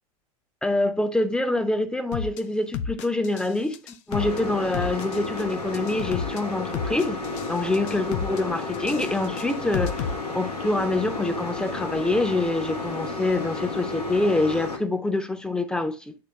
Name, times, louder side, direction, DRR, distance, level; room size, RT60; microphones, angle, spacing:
voice 1, 0.6-3.8 4.1-16.1, left 2 dB, 5° left, 0.8 m, -26 dB
sound 1, 2.1-2.4 2.7-3.5 3.7-4.4 4.7-5.4 5.7-6.4 6.7-7.5 7.7-8.4 8.7-10.1, left 7 dB, 50° left, 0.6 m, -31 dB
sound 2, 4.1-14.8, left 3 dB, 90° left, 1.6 m, -32 dB
8.6 x 3.2 x 4.2 m
figure-of-eight pair, 90°, 19 cm